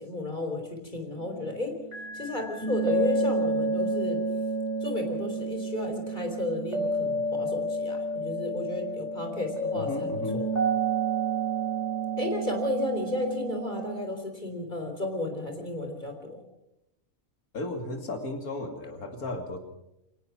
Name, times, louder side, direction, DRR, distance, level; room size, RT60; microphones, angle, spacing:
voice 1, 0.0-1.7 2.1-4.2 4.8-10.4 12.2-16.4, left 2 dB, 30° left, 4 dB, 4.1 m, -33 dB
sound 1, 1.9-14.0, right 2 dB, 50° right, 5.0 m, -30 dB
voice 2, 9.7-10.4 17.5-19.6, left 1 dB, 90° left, 4 dB, 3.2 m, -34 dB
23.0 x 19.0 x 6.1 m, 0.86 s
omnidirectional pair, 1.5 m